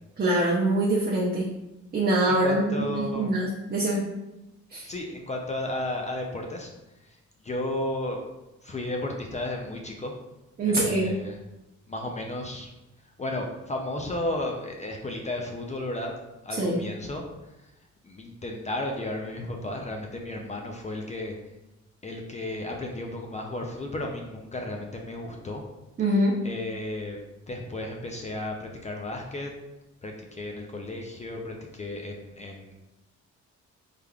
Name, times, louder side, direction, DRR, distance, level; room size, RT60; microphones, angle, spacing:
voice 1, 0.2-1.5 1.9-4.0 4.7-4.9 10.6-11.1 16.5-16.8 26.0-26.4, right 1 dB, 30° right, -4 dB, 0.6 m, -24 dB
voice 2, 2.3-3.3 4.8-6.7 7.0-7.2 7.4-8.2 8.6-10.1 10.6-11.4 11.9-12.7 13.2-16.1 16.4-17.2 18.0-21.4 22.0-25.6 26.0-27.2 27.5-29.5 30.0-32.7, left 1 dB, 25° left, 1 dB, 0.4 m, -33 dB
3.4 x 3.3 x 2.3 m, 0.97 s
cardioid pair, 90°, 30 cm